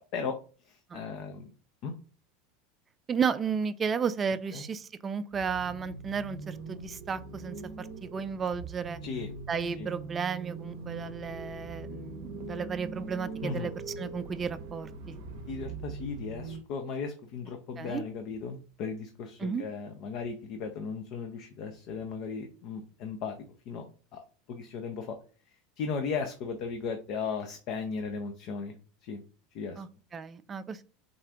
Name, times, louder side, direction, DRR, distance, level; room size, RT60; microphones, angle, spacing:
voice 1, 0.6-1.5 1.8-1.9 4.5-4.6 9.0-9.3 9.8-9.9 13.4-13.7 15.5-23.4 23.7-23.8 24.1-24.2 24.5-25.2 25.5-28.7 29.0-29.2 29.5-29.8, left 5 dB, 55° left, 6 dB, 0.5 m, -36 dB
voice 2, 3.1-9.0 9.5-15.2 17.8-18.0 19.4-19.6 29.8-30.8, right 6 dB, 30° right, 13 dB, 0.3 m, -33 dB
sound 1, 5.3-16.6, right 3 dB, 65° right, 0.6 m, -42 dB
3.7 x 2.4 x 3.5 m, 0.37 s
hypercardioid pair, 85°, 0 cm